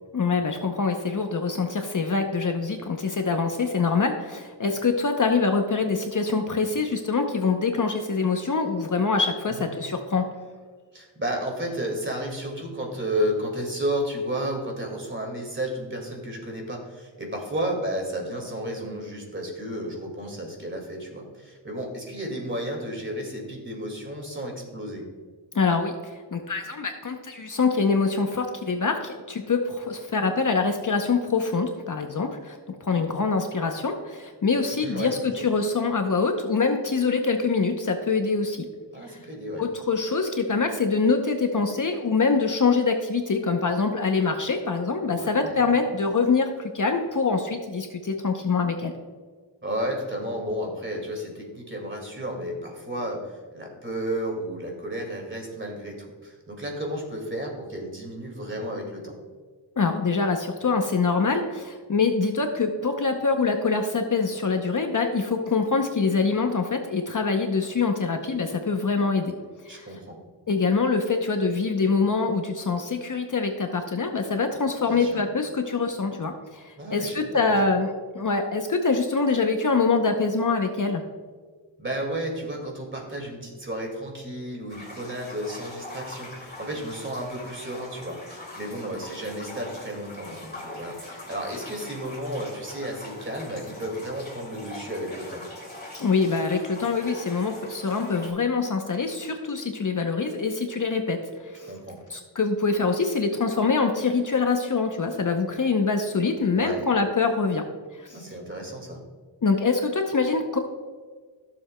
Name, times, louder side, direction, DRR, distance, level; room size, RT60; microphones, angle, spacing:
voice 1, 0.1-10.2 25.5-38.7 39.1-39.2 39.6-48.9 59.8-69.4 69.6-69.9 70.5-81.0 96.0-101.7 102.1-108.2 109.4-110.6, left 4 dB, 45° left, 4 dB, 0.7 m, -24 dB
voice 2, 10.9-25.0 34.8-35.5 38.9-39.6 45.0-45.7 49.6-59.1 69.7-70.2 74.8-75.2 76.8-77.5 81.8-95.4 101.7-102.0 106.5-106.8 108.1-109.0, equal, 25° right, 1 dB, 2.1 m, -32 dB
sound 1, 84.7-98.3, left 2 dB, 20° left, 2.2 m, -42 dB
15.0 x 7.1 x 2.2 m, 1.5 s
wide cardioid pair, 120°, 45 cm